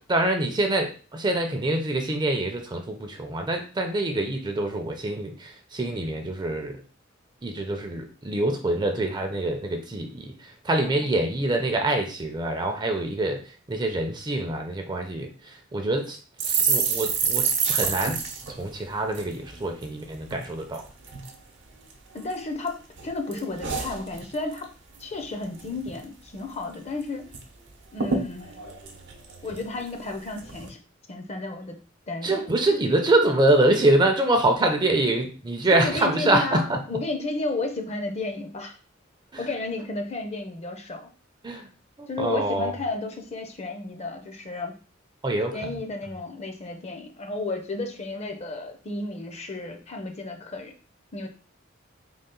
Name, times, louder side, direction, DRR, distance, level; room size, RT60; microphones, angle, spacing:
voice 1, 0.1-6.8 7.4-16.2 16.4-18.2 18.5-20.9 32.2-36.8 39.3-39.5 41.4-41.7 42.0-42.7 45.2-45.8, right 2 dB, 20° right, 4 dB, 0.5 m, -25 dB
sound 1, 16.4-19.9 20.2-20.5 20.7-21.4 21.9-22.7 23.0-24.6 24.9-25.2 25.4-26.0 26.4-26.5 26.7-27.4 27.7-27.8 28.0-29.9 30.4-30.7, right 6 dB, 60° right, 0.7 m, -28 dB
voice 2, 22.1-24.7 25.0-27.3 27.9-28.6 29.4-30.8 31.1-31.8 32.1-32.4 35.7-38.8 39.4-41.1 42.1-44.7 45.5-50.8 51.1-51.3, left 2 dB, 35° left, 6 dB, 0.6 m, -32 dB
3.8 x 2.3 x 3.8 m, 0.37 s
head